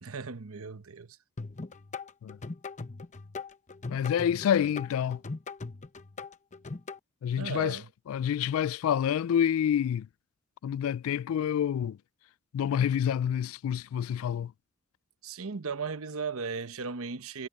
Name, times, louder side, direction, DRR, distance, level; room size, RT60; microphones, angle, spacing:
voice 1, 0.0-1.2 7.4-7.9 15.2-17.5, right 5 dB, 90° right, 1.0 m, -36 dB
sound 1, 1.4-7.0, left 3 dB, 35° left, 0.8 m, -40 dB
voice 2, 3.9-5.2 7.2-7.8 8.1-10.1 10.6-12.0 12.5-14.5, left 9 dB, 80° left, 0.3 m, -28 dB
head